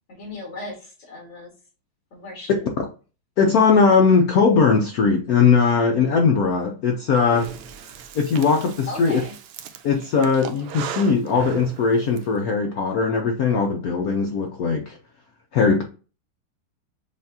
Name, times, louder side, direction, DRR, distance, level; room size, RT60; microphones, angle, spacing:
voice 1, 0.1-1.5 2.1-2.7 8.9-9.3, left 2 dB, 60° left, 2.8 m, -36 dB
voice 2, 3.4-7.5 8.1-9.2 9.8-15.0 15.5-15.8, left 5 dB, 85° left, 0.8 m, -19 dB
Breathing, 7.3-12.2, right 8 dB, 80° right, 1.5 m, -37 dB
6.9 x 2.4 x 2.7 m
omnidirectional pair, 2.4 m